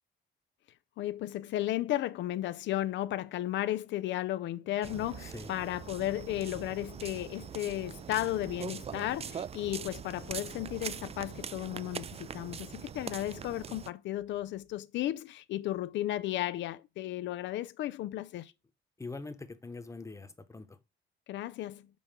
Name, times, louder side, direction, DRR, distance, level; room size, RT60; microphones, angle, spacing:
voice 1, 1.0-18.5 21.3-21.9, left 14 dB, 80° left, 0.4 m, -34 dB
sound 1, 4.8-13.9, right 7 dB, 35° right, 0.4 m, -42 dB
voice 2, 19.0-20.8, left 3 dB, 15° left, 1.0 m, -43 dB
5.4 x 4.3 x 5.8 m
cardioid pair, 90°, 19 cm